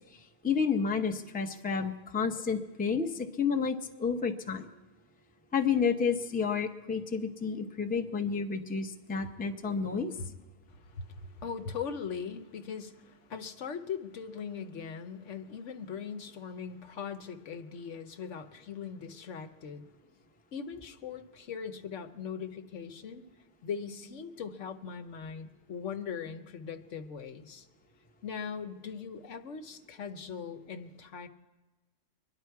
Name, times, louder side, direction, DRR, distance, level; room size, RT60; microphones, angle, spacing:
voice 1, 0.4-4.7 5.5-10.1, left 5 dB, 10° left, 5 dB, 0.6 m, -30 dB
voice 2, 10.7-19.9 20.5-23.2 23.6-27.7 28.2-31.3, left 6 dB, 75° left, 8 dB, 1.2 m, -40 dB
24.5 x 11.0 x 4.6 m, 1.1 s
omnidirectional pair, 1.3 m